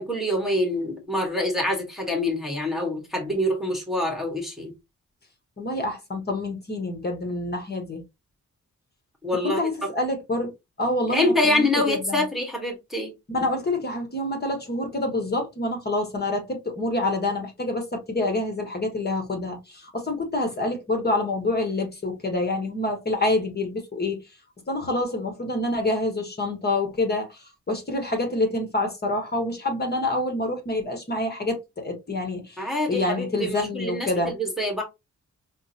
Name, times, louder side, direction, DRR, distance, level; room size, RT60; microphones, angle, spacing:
voice 1, 0.0-4.7 9.2-9.9 11.1-13.1 32.6-34.8, left 1 dB, ahead, 1.2 m, -25 dB
voice 2, 5.6-8.0 9.4-10.5 10.8-12.2 13.3-24.2 24.7-34.3, left 2 dB, 35° left, 1.2 m, -27 dB
5.6 x 2.1 x 2.8 m
wide cardioid pair, 125°, 30 cm